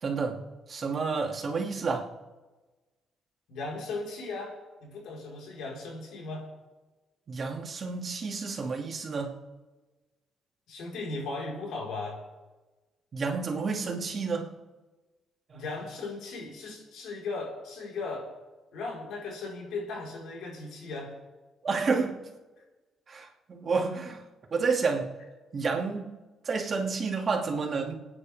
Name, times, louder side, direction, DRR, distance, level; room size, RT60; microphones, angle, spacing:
voice 1, 0.0-2.1 7.3-9.4 13.1-14.6 15.5-15.6 21.6-22.3 23.1-24.2 24.5-25.1 25.5-26.1 26.4-27.9, right 4 dB, 45° right, 1 dB, 2.5 m, -30 dB
voice 2, 3.5-6.4 10.7-12.2 15.5-18.3 18.7-21.1, left 3 dB, 80° left, -2 dB, 4.8 m, -37 dB
28.5 x 9.8 x 3.6 m, 1.2 s
cardioid pair, 90°, 0 cm